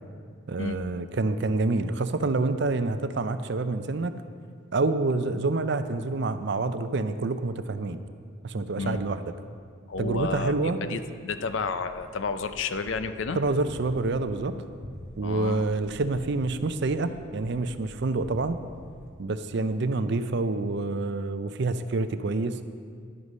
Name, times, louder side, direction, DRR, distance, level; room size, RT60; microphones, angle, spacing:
voice 1, 0.5-4.2 4.7-8.0 8.4-9.3 10.0-11.0 13.4-14.5 15.2-18.6 19.2-22.6, right 3 dB, 55° right, 10 dB, 0.5 m, -27 dB
voice 2, 9.9-13.4 15.2-15.7, left 4 dB, 60° left, 10 dB, 0.5 m, -31 dB
sound 1, 11.9-19.1, equal, 25° left, 1.6 m, -46 dB
11.0 x 8.1 x 5.4 m, 2.1 s
head